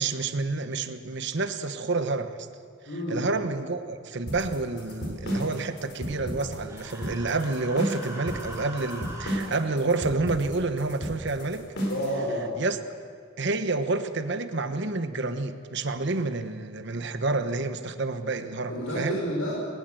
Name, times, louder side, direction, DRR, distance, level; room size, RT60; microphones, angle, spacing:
voice 1, 0.0-2.5 3.1-11.7 12.5-12.8 13.4-19.2, right 3 dB, 60° right, 9 dB, 1.1 m, -29 dB
voice 2, 2.9-3.3 11.9-12.5 18.7-19.5, equal, 80° left, -6 dB, 5.7 m, -30 dB
sound 1, 4.3-12.1, equal, 55° left, 4.7 m, -33 dB
Human voice, 6.6-9.4, right 1 dB, 15° right, 3.7 m, -41 dB
20.5 x 19.5 x 7.8 m, 2.3 s
head